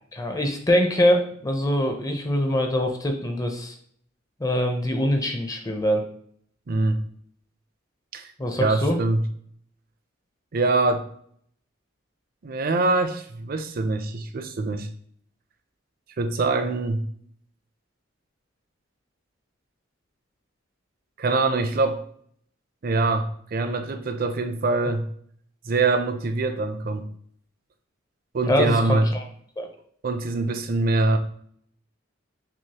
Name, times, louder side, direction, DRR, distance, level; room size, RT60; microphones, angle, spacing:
voice 1, 0.1-3.8 4.4-6.0 8.4-9.0 28.5-29.2 29.6-29.7, equal, 20° left, 3 dB, 0.5 m, -23 dB
voice 2, 6.7-7.0 8.1-8.3 8.6-9.2 10.5-11.1 12.4-14.9 16.2-17.1 21.2-22.0 22.8-25.1 25.7-27.1 28.3-29.1 30.0-31.2, right 3 dB, 50° right, 8 dB, 0.4 m, -24 dB
6.0 x 2.0 x 2.8 m, 0.64 s
head